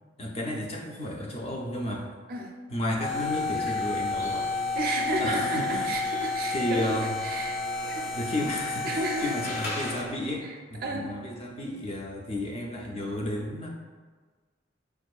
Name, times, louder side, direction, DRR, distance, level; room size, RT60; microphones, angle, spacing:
voice 1, 0.2-2.1 2.7-4.7 5.2-5.9 6.5-7.2 8.1-13.7, left 1 dB, 30° left, 0 dB, 0.4 m, -32 dB
sound 1, 3.0-10.2, left 3 dB, 90° left, 0.9 m, -31 dB
sound 2, 3.4-8.6, equal, 10° right, 0.6 m, -48 dB
voice 2, 4.8-8.1 8.8-9.4 10.4-11.1, right 2 dB, 50° right, 1 dB, 0.4 m, -32 dB
4.4 x 2.4 x 2.3 m, 1.5 s
head